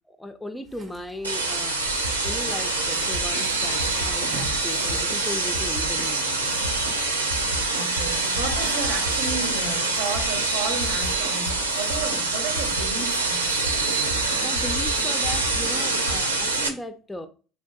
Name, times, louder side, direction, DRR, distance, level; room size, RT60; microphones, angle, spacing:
voice 1, 0.2-1.8 2.2-6.5 14.4-17.3, left 1 dB, 10° left, 0.4 m, -37 dB
sound 1, 0.6-5.6, right 4 dB, 35° right, 0.6 m, -45 dB
sound 2, 1.2-16.7, right 3 dB, 90° right, 0.3 m, -25 dB
sound 3, 1.8-16.2, equal, 90° left, 0.5 m, -36 dB
voice 2, 7.7-13.5, right 5 dB, 70° right, 0.7 m, -33 dB
3.6 x 2.6 x 2.2 m
figure-of-eight pair, 60°, 0 cm